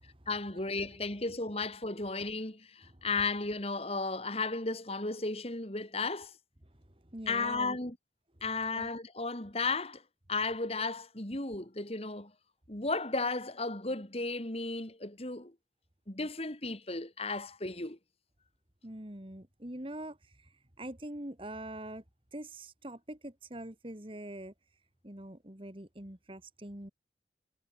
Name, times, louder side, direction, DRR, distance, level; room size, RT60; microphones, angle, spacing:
voice 1, 0.3-6.3 7.3-8.0 8.4-10.0 10.3-12.3 12.7-15.5 16.1-18.0, left 3 dB, 35° left, 2.5 m, -34 dB
voice 2, 7.1-7.8 8.7-8.9 18.8-20.2 20.8-22.0 22.3-24.5 25.0-26.9, right 1 dB, 30° right, 2.3 m, -43 dB
head